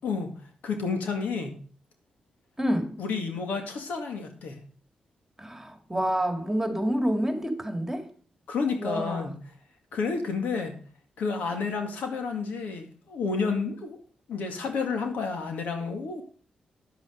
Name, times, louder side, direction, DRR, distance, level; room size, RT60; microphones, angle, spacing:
voice 1, 0.0-0.3 0.6-1.5 3.0-4.6 8.5-9.3 9.9-10.7 11.2-14.0 14.3-16.2, left 5 dB, 80° left, 2.0 m, -30 dB
voice 2, 2.6-3.0 5.4-8.1 8.8-9.3, equal, 10° right, 2.1 m, -28 dB
10.0 x 8.1 x 5.1 m
cardioid pair, 70°, 3 cm